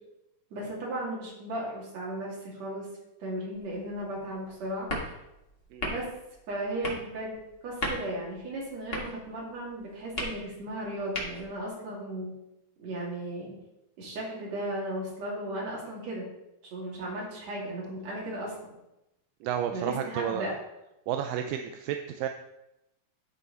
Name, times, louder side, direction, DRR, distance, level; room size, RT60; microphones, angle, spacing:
voice 1, 0.5-2.9 3.2-4.9 5.8-6.1 6.5-7.3 7.6-12.3 12.8-13.5 14.0-16.2 16.7-18.5 19.7-20.5, right 1 dB, 50° right, -4 dB, 3.3 m, -35 dB
sound 1, 3.5-11.7, left 1 dB, 85° left, 0.5 m, -39 dB
voice 2, 19.4-20.5 21.1-22.3, right 9 dB, 80° right, 6 dB, 2.0 m, -32 dB
12.5 x 4.8 x 4.0 m, 0.90 s
omnidirectional pair, 4.2 m